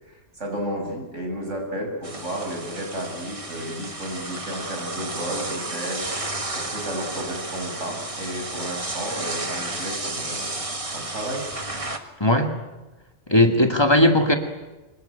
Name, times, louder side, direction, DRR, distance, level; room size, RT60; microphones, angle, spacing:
voice 1, 0.1-10.6 10.9-11.4, right 1 dB, 75° right, 2 dB, 6.9 m, -32 dB
sound 1, 2.0-12.0, right 2 dB, 25° right, 1.9 m, -32 dB
voice 2, 12.2-12.5 13.3-14.4, left 1 dB, 20° left, 4 dB, 2.3 m, -17 dB
26.5 x 22.0 x 9.2 m, 1.1 s
omnidirectional pair, 1.3 m